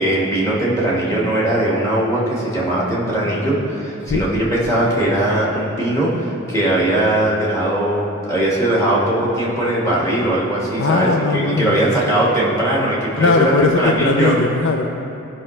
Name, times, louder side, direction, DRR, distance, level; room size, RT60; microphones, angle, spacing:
voice 1, 0.0-13.3 13.6-14.3, right 1 dB, 15° left, -6 dB, 1.8 m, -19 dB
voice 2, 4.0-4.3 10.8-11.8 12.8-14.9, left 4 dB, 60° left, 3 dB, 0.5 m, -19 dB
15.5 x 5.7 x 3.2 m, 2.9 s
head